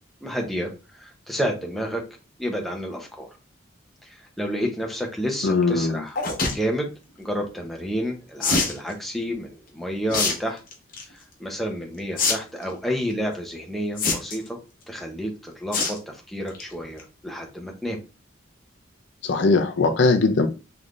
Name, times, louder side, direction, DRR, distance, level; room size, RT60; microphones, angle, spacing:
voice 1, 0.2-2.0 2.4-3.3 4.0-6.2 6.5-6.9 7.2-10.6 11.1-14.6 14.9-18.0, equal, ahead, 0 dB, 0.7 m, -30 dB
voice 2, 5.4-6.0 19.2-20.5, left 3 dB, 60° left, 7 dB, 0.5 m, -20 dB
sound 1, 6.1-6.5 8.4-8.8 10.1-10.3 10.7-11.0 12.2-12.3 12.6-12.7 14.0-14.5 15.7-16.0 16.4-16.6 17.0-17.1 17.3-17.4, left 3 dB, 45° left, 0.8 m, -23 dB
3.8 x 3.2 x 2.4 m, 0.31 s
head